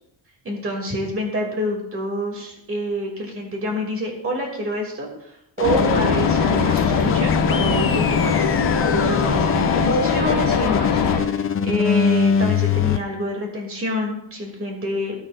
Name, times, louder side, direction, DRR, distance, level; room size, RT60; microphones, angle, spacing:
voice 1, 0.4-8.3 8.9-15.1, equal, 30° right, 0 dB, 2.5 m, -27 dB
sound 1, 5.6-11.2, left 5 dB, 70° left, 2.0 m, -20 dB
sound 2, 5.6-13.0, left 6 dB, 30° left, 0.4 m, -24 dB
17.0 x 8.1 x 2.5 m, 0.77 s
cardioid pair, 170°, 44 cm